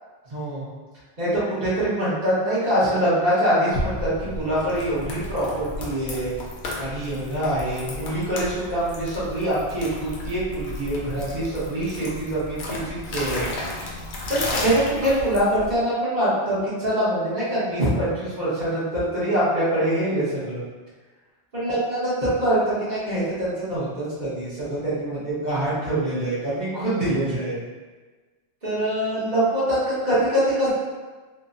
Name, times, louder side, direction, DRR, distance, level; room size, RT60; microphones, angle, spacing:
voice 1, 0.3-0.6 1.2-6.3 6.8-13.4 14.3-20.6 21.5-27.6 28.6-30.7, right 1 dB, 40° right, -11 dB, 1.2 m, -24 dB
sound 1, 3.7-15.8, left 1 dB, 80° left, 0.9 m, -33 dB
3.3 x 2.1 x 2.5 m, 1.3 s
omnidirectional pair, 1.1 m